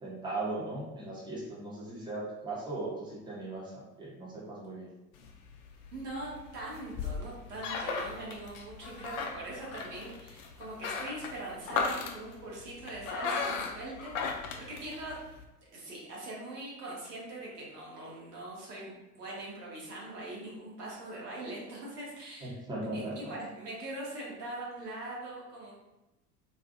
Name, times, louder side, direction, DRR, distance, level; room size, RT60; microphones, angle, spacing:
voice 1, 0.0-4.9 22.4-23.3, right 2 dB, 10° right, -6 dB, 0.8 m, -38 dB
sound 1, 5.2-15.4, left 5 dB, 55° left, 0.5 m, -37 dB
voice 2, 5.9-15.2 15.7-22.6 22.9-25.7, right 2 dB, 70° right, -5 dB, 1.0 m, -42 dB
2.6 x 2.4 x 2.5 m, 0.99 s
figure-of-eight pair, 70°, 48 cm